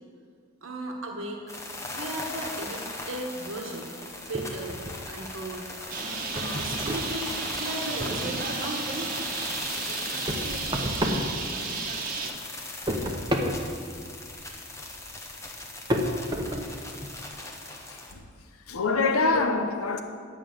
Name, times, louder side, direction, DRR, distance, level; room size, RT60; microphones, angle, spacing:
voice 1, 0.6-1.5 1.9-3.9 4.2-4.8 5.1-6.0 6.3-8.8, right 1 dB, 65° right, 1.2 m, -37 dB
sound 1, 1.5-18.1, left 2 dB, 15° left, 0.9 m, -39 dB
sound 2, 4.3-5.4 5.7-8.7 9.0-12.0 12.3-17.3, equal, 20° right, 0.8 m, -32 dB
Bird, 5.9-12.3, right 3 dB, 40° right, 1.1 m, -33 dB
voice 2, 17.9-18.2 18.7-20.0, left 3 dB, 90° left, 0.9 m, -25 dB
10.5 x 5.6 x 7.9 m
head